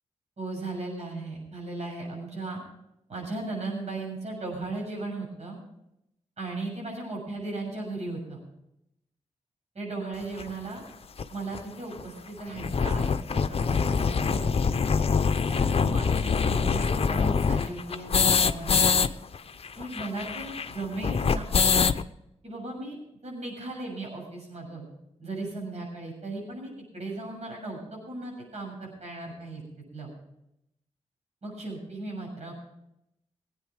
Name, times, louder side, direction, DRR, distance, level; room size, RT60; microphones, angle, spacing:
voice 1, 0.4-2.6 3.1-5.6 6.4-8.4 9.7-10.8 11.3-14.7 15.5-18.9 19.8-21.5 22.4-23.0 23.2-24.8 25.2-30.1 31.4-32.5, right 2 dB, 65° right, -1 dB, 7.0 m, -36 dB
sound 1, 10.4-10.5 11.2-11.3 11.5-11.6 11.9-12.0 12.4-19.1 19.3-19.4 19.6-22.0, left 5 dB, 50° left, 0.7 m, -24 dB
19.5 x 9.1 x 4.9 m, 0.81 s
cardioid pair, 50°, 13 cm